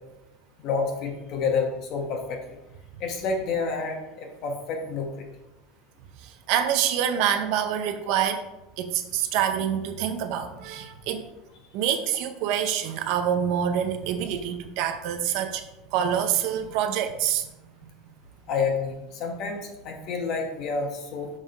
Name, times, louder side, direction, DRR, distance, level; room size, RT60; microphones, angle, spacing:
voice 1, 0.6-2.4 3.0-5.2 18.5-21.3, left 4 dB, 40° left, 3 dB, 1.2 m, -29 dB
voice 2, 6.2-8.5 8.8-11.2 11.7-15.6 15.9-17.4, right 9 dB, 50° right, 8 dB, 0.6 m, -26 dB
6.4 x 3.7 x 5.3 m, 0.96 s
supercardioid pair, 170°, 0 cm